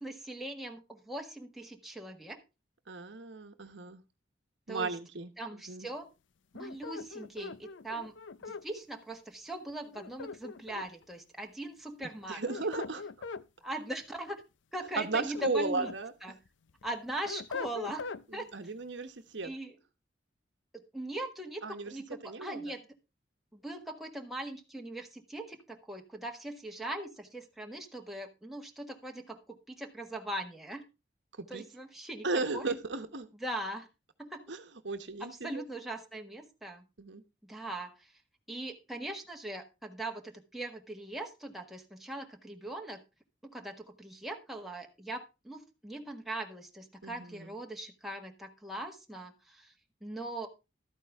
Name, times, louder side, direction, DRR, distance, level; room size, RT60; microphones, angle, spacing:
voice 1, 0.0-2.4 4.7-4.9 5.4-6.1 6.5-8.1 8.5-12.4 13.6-14.4 14.7-15.9 16.2-16.4 16.8-18.1 18.3-18.5 19.4-19.8 20.7-22.8 23.5-30.8 31.5-32.3 32.5-32.7 33.4-33.9 34.2-34.5 35.2-36.8 37.4-38.1 38.5-43.0 43.5-49.7 50.0-50.5, right 1 dB, ahead, 1 dB, 1.5 m, -40 dB
voice 2, 2.9-4.0 4.7-5.9 12.3-13.0 15.0-16.1 18.3-19.5 21.6-21.9 22.2-22.7 31.5-31.6 32.2-33.3 34.5-35.6 37.0-37.2 47.0-47.5, right 3 dB, 70° right, 8 dB, 1.1 m, -35 dB
sound 1, 6.5-8.7 9.9-11.0 12.2-13.5 14.9-16.0 16.5-18.2, left 4 dB, 75° left, 0.5 m, -42 dB
13.0 x 9.0 x 3.5 m, 0.27 s
head